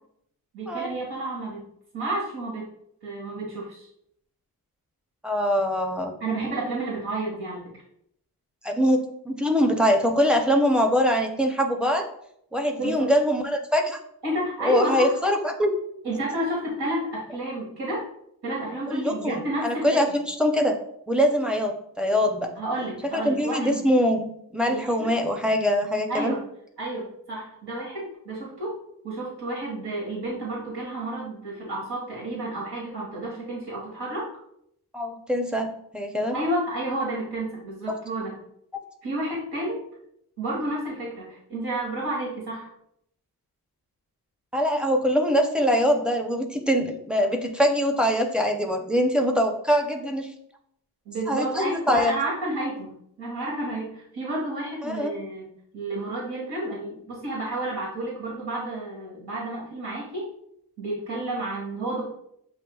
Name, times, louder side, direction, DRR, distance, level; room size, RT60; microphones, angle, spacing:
voice 1, 0.5-1.6 1.9-2.7 3.0-3.9 6.2-7.7 12.8-13.1 14.2-15.2 16.0-18.1 18.4-20.0 22.6-23.9 24.7-25.1 26.1-26.4 26.8-28.8 29.0-34.3 36.3-38.4 39.0-39.8 40.4-42.7 51.1-55.4 55.7-60.3 60.8-62.1, right 1 dB, 85° right, -6 dB, 1.8 m, -31 dB
voice 2, 5.2-6.1 8.6-12.1 12.5-14.0 14.6-15.7 18.9-20.7 21.1-22.5 23.1-24.3 24.5-26.3 34.9-36.4 44.5-50.3 51.3-52.1 54.8-55.1, equal, ahead, 3 dB, 0.6 m, -23 dB
8.2 x 2.8 x 2.3 m, 0.72 s
wide cardioid pair, 105°, 38 cm